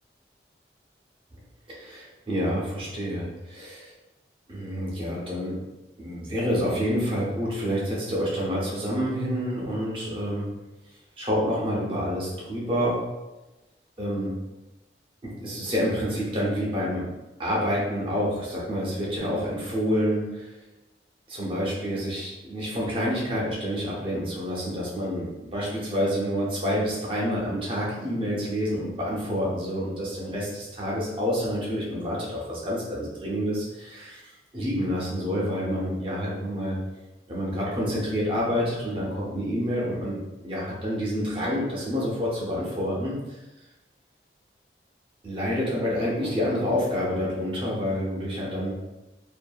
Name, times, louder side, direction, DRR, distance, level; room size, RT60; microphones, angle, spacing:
voice 1, 1.7-3.9 4.5-5.6 6.0-10.5 11.2-13.1 14.0-14.4 15.2-17.1 17.4-20.5 21.3-36.8 37.3-43.2 45.2-48.7, equal, 30° right, -6 dB, 0.7 m, -28 dB
2.6 x 2.5 x 2.3 m, 1.0 s
head